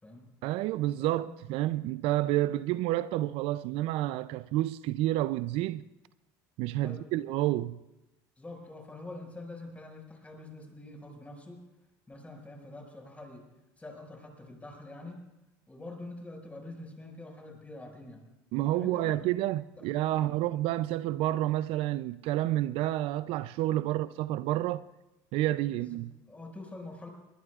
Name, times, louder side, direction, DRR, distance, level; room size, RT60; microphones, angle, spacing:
voice 1, 0.4-5.8 6.6-7.8 18.5-24.8 25.3-26.1, right 15 dB, 65° right, 0.4 m, -29 dB
voice 2, 1.0-1.4 6.8-7.1 8.4-11.6 12.1-13.4 13.8-15.2 15.7-18.2 18.7-19.3 19.8-20.3 25.7-26.0 26.3-27.1, left 2 dB, 15° left, 5.5 m, -45 dB
22.5 x 20.0 x 2.4 m
supercardioid pair, 100°, 10 cm